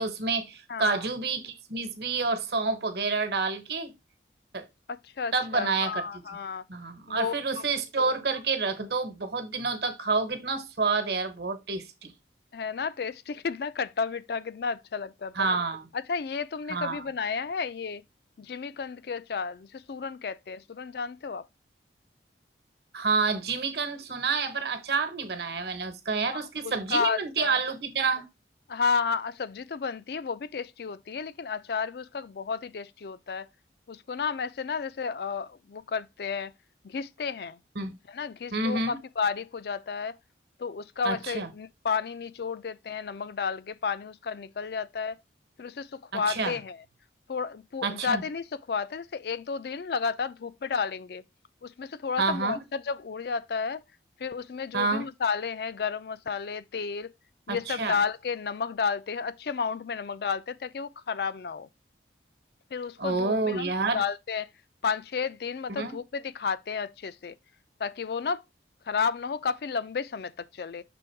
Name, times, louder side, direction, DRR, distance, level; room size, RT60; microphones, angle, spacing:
voice 1, 0.0-3.9 4.5-4.6 5.3-6.0 6.7-12.1 15.3-15.9 16.7-17.0 22.9-28.3 37.7-38.0 38.5-39.0 41.0-41.5 46.1-46.6 47.8-48.2 52.2-52.6 54.7-55.1 57.5-58.0 63.0-64.0 65.7-65.9, right 4 dB, 65° right, 1.1 m, -28 dB
voice 2, 0.7-1.0 4.9-6.6 7.1-7.6 12.5-15.5 15.9-18.0 18.4-21.4 26.6-27.6 28.7-33.5 33.9-36.5 36.8-37.6 38.1-40.1 40.6-45.2 45.6-45.9 46.1-46.8 47.3-51.2 51.6-53.8 54.2-57.1 57.5-61.7 62.7-64.5 64.8-67.3 67.8-68.4 68.9-70.8, left 5 dB, 60° left, 0.4 m, -32 dB
6.1 x 3.5 x 4.5 m
head